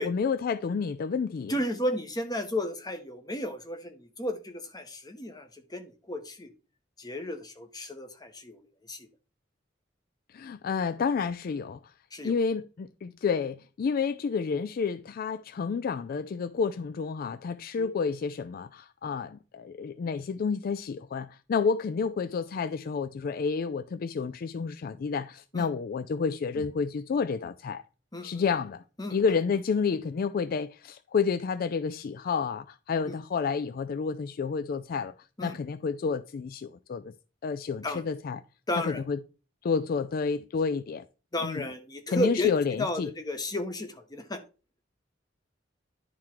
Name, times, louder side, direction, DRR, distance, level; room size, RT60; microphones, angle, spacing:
voice 1, 0.0-1.5 10.3-11.8 12.2-27.8 28.2-28.8 29.1-35.1 35.4-37.1 37.4-38.4 38.8-39.2 39.6-41.0 41.4-41.6 42.1-43.1, left 5 dB, 50° left, 0.3 m, -30 dB
voice 2, 1.5-6.5 7.0-8.6 8.9-9.1 12.1-12.3 17.8-17.9 25.5-25.7 28.1-28.4 29.0-29.2 33.1-33.2 35.4-35.6 37.8-38.0 38.7-39.0 41.3-42.5 42.8-44.4, left 1 dB, 20° left, 1.0 m, -33 dB
10.5 x 3.6 x 4.4 m
head